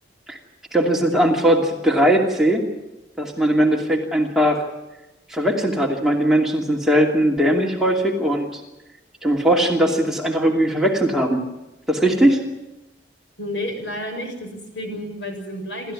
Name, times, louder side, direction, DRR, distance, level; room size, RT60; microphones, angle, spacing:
voice 1, 0.7-2.6 3.2-4.7 5.3-8.6 9.2-11.4 11.9-12.4, right 1 dB, ahead, -1 dB, 2.6 m, -19 dB
voice 2, 13.4-15.9, left 1 dB, 85° left, 4 dB, 6.8 m, -31 dB
28.5 x 14.0 x 9.7 m, 1.0 s
head